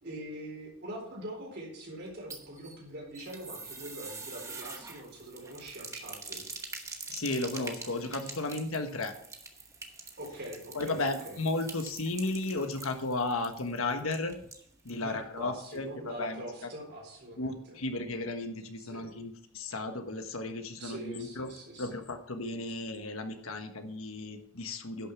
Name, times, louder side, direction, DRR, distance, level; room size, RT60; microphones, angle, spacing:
voice 1, 0.0-6.5 10.2-11.4 14.9-17.8 18.8-19.1 20.8-22.0, right 1 dB, 50° right, 0 dB, 4.2 m, -43 dB
sound 1, 2.1-15.0 15.3-15.4 15.7-15.8, right 3 dB, 15° right, 1.0 m, -45 dB
voice 2, 7.1-9.1 10.7-14.4 14.8-16.4 17.4-21.5 21.8-25.1, left 2 dB, 75° left, 6 dB, 1.3 m, -34 dB
11.0 x 6.7 x 5.9 m, 0.70 s
head